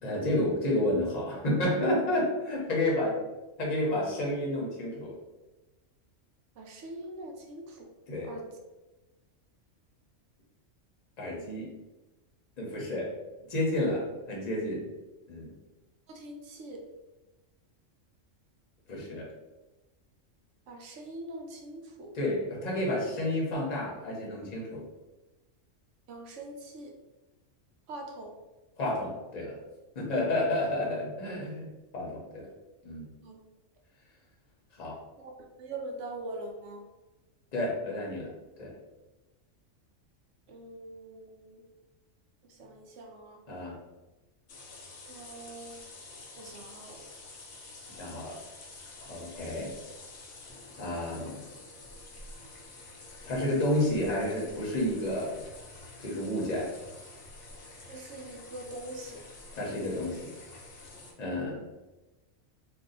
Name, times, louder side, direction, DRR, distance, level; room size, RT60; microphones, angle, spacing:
voice 1, 0.0-3.2 3.6-5.2 8.1-8.3 11.2-11.7 12.6-13.1 13.5-14.8 15.3-15.5 18.9-19.3 22.1-24.8 28.8-29.6 29.9-31.7 31.9-32.5 32.8-33.0 34.8-35.0 37.5-38.3 38.6-38.7 43.5-43.8 48.0-48.3 49.0-49.7 50.8-51.4 53.2-55.4 56.0-56.7 59.6-60.3 61.2-61.6, left 1 dB, 40° left, -3 dB, 0.8 m, -30 dB
voice 2, 6.6-7.9 8.2-8.5 16.1-16.8 20.7-22.1 26.1-27.0 27.9-28.3 33.2-33.4 35.2-36.8 40.5-41.6 42.5-43.4 45.1-45.8 46.3-47.1 49.1-49.2 57.9-59.2, right 2 dB, 70° right, 2 dB, 0.9 m, -43 dB
sound 1, 44.5-61.1, left 2 dB, 75° left, 1.0 m, -48 dB
2.7 x 2.3 x 3.8 m, 1.1 s
omnidirectional pair, 1.3 m